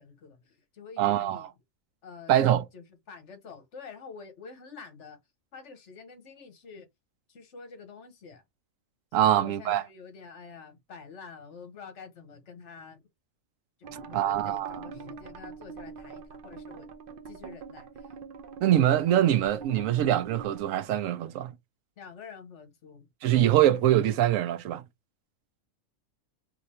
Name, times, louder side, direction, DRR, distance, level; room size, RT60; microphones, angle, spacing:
voice 1, 0.0-1.5 2.0-2.4 2.7-5.2 5.5-6.9 7.3-8.4 9.2-13.0 13.8-16.9 17.3-18.1 22.0-23.1, left 5 dB, 60° left, 1.2 m, -47 dB
voice 2, 1.0-1.5 2.3-2.7 9.1-9.8 14.1-14.9 18.6-21.6 23.2-24.8, right 12 dB, 80° right, 1.0 m, -24 dB
sound 1, 13.8-20.6, right 5 dB, 55° right, 0.6 m, -44 dB
2.9 x 2.5 x 4.2 m
omnidirectional pair, 1.4 m